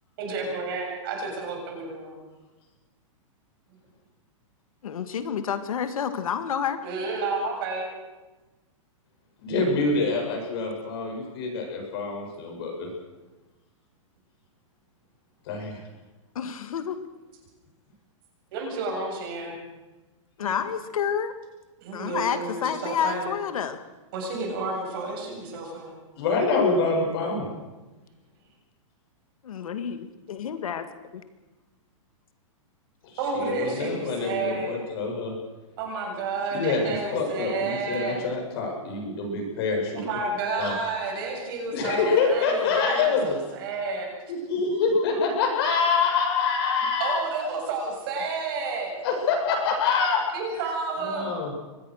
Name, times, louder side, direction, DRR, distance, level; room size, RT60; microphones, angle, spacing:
voice 1, 0.2-2.2 6.8-7.9 18.5-19.6 20.4-20.6 21.8-23.3 24.1-26.0 33.2-34.8 35.8-38.2 39.9-44.1 47.0-49.0 50.3-51.3, right 3 dB, 40° right, 1 dB, 7.7 m, -31 dB
voice 2, 4.8-6.8 16.4-17.0 20.4-21.3 21.9-23.8 29.4-30.9 31.1-31.2, left 8 dB, 85° left, 9 dB, 2.0 m, -29 dB
voice 3, 9.4-12.9 15.5-15.8 26.2-27.5 33.3-35.3 36.5-40.0 40.6-40.8 41.7-43.4 44.3-47.2 49.0-50.2 51.0-51.5, left 4 dB, 45° left, 1 dB, 7.9 m, -26 dB
24.0 x 19.5 x 6.5 m, 1.2 s
hypercardioid pair, 165°, 17 cm